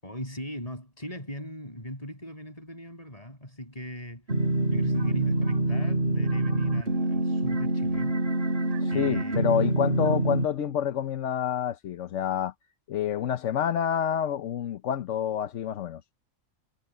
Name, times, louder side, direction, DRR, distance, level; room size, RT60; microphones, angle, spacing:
voice 1, 0.0-4.3 4.7-8.2 8.9-9.6, equal, 25° left, 7.6 m, -39 dB
sound 1, 4.3-10.5, right 2 dB, 45° right, 3.2 m, -26 dB
voice 2, 8.8-12.5 12.9-16.0, left 9 dB, 60° left, 1.1 m, -28 dB
omnidirectional pair, 1.5 m